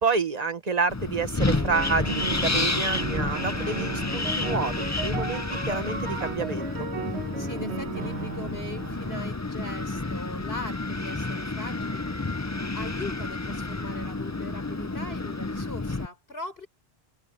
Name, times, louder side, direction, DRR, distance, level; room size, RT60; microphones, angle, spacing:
voice 1, 0.0-6.9, right 4 dB, 40° right, 1.3 m, -29 dB
Wind, 0.9-16.1, left 2 dB, 20° left, 0.7 m, -30 dB
sound 1, 1.5-9.3, right 5 dB, 80° right, 1.6 m, -36 dB
voice 2, 7.4-12.5 12.7-16.7, left 2 dB, 65° left, 5.7 m, -40 dB
omnidirectional pair, 1.1 m